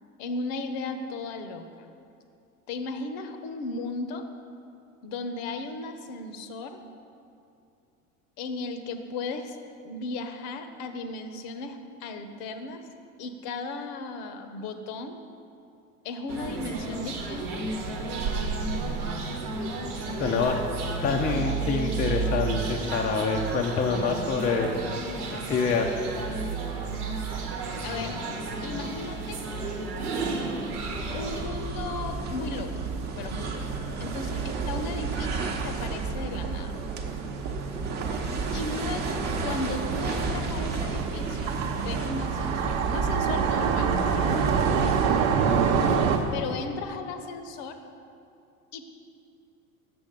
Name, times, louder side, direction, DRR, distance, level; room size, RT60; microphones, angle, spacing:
voice 1, 0.2-1.9 2.7-4.2 5.0-6.8 8.4-9.6 9.8-12.8 13.2-15.2 16.0-17.6 27.8-28.2 28.6-29.4 31.1-32.7 33.0-33.7 34.0-36.7 38.5-45.0 46.3-47.8 48.7-48.9, left 3 dB, 50° left, 8 dB, 0.8 m, -36 dB
sound 1, 16.3-31.4, right 3 dB, 80° right, 1.1 m, -32 dB
voice 2, 20.2-20.6 21.0-24.7 25.3-25.9, left 5 dB, 20° left, 2 dB, 0.4 m, -26 dB
sound 2, 30.7-46.4, right 4 dB, 35° right, 1.0 m, -32 dB
sound 3, 35.7-46.2, right 6 dB, 60° right, 0.8 m, -28 dB
6.9 x 6.1 x 5.2 m, 2.6 s
hypercardioid pair, 85°, 45 cm